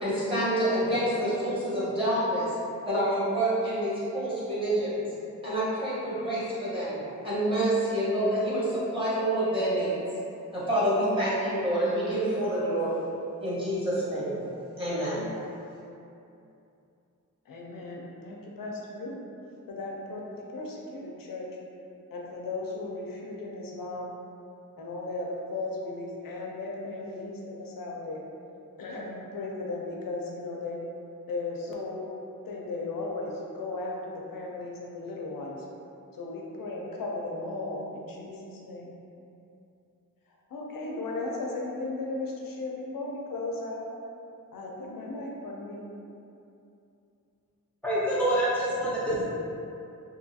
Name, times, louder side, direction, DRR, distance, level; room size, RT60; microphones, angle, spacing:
voice 1, 0.0-2.5 2.8-5.1 5.4-10.0 10.5-13.1 13.4-14.4 14.8-15.3, right 1 dB, 15° right, -11 dB, 1.0 m, -27 dB
voice 2, 17.5-19.2 19.7-21.5 22.1-24.1 24.8-28.2 28.8-30.8 31.3-32.0 32.5-35.7 36.1-38.9 40.5-43.9 44.5-45.8, left 2 dB, 85° left, -2 dB, 0.5 m, -36 dB
voice 3, 47.8-49.3, right 1 dB, 5° left, -9 dB, 0.6 m, -26 dB
2.7 x 2.3 x 2.6 m, 2.7 s
wide cardioid pair, 120°, 33 cm